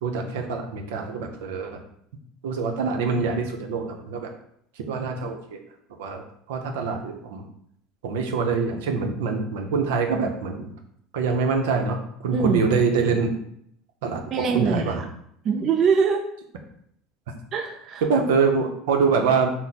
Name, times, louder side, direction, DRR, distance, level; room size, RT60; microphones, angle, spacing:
voice 1, 0.0-1.8 2.4-4.3 4.8-5.6 6.0-7.4 8.0-10.7 11.1-13.3 14.0-15.0 18.0-19.5, right 5 dB, 90° right, 3 dB, 0.7 m, -25 dB
voice 2, 14.3-14.8 15.4-16.2 17.5-18.0, right 6 dB, 40° right, 1 dB, 0.4 m, -22 dB
4.4 x 2.1 x 4.0 m, 0.70 s
supercardioid pair, 120°, 0 cm